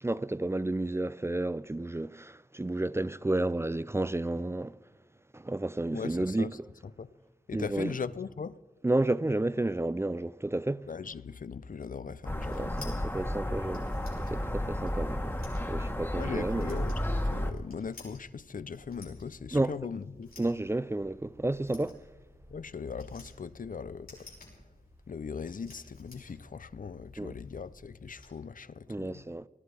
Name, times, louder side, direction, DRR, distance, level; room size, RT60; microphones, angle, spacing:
voice 1, 0.0-4.8 5.3-6.7 7.5-7.9 8.8-10.8 12.5-13.9 14.3-15.3 15.7-16.7 19.5-19.7 20.4-22.0 27.2-27.3 28.9-29.5, right 2 dB, 15° right, 0.4 m, -31 dB
voice 2, 5.9-6.5 7.0-7.1 7.5-8.6 10.9-12.9 16.1-20.3 22.5-24.3 25.1-29.2, left 5 dB, 65° left, 0.6 m, -39 dB
sound 1, 12.1-28.3, left 2 dB, 85° left, 6.1 m, -54 dB
sound 2, 12.2-17.5, left 1 dB, 15° left, 1.5 m, -32 dB
19.5 x 14.0 x 4.9 m
wide cardioid pair, 65°, 15 cm